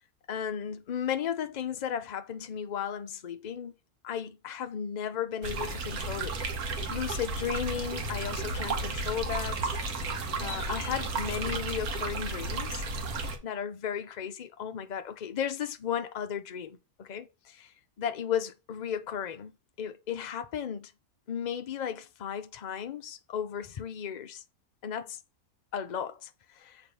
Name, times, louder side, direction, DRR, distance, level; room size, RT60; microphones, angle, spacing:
voice 1, 0.3-3.7 4.0-6.4 6.9-9.7 10.4-12.8 13.4-17.7 18.0-20.9 21.3-24.4 24.8-25.2 25.7-26.3 26.6-26.8, left 8 dB, 55° left, 0.4 m, -35 dB
sound 1, 5.4-13.4, right 3 dB, 75° right, 1.6 m, -33 dB
7.0 x 3.6 x 4.8 m
omnidirectional pair, 1.6 m